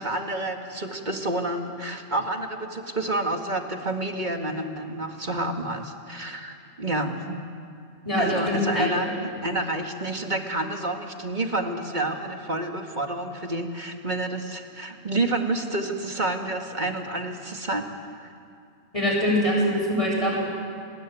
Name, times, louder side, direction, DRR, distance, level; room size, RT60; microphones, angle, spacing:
voice 1, 0.0-7.4 8.2-9.1 9.4-17.9, right 2 dB, 35° right, 4 dB, 2.1 m, -29 dB
voice 2, 8.0-9.1 18.9-20.4, equal, 25° left, -2 dB, 7.8 m, -23 dB
30.0 x 20.5 x 9.2 m, 2.4 s
omnidirectional pair, 1.4 m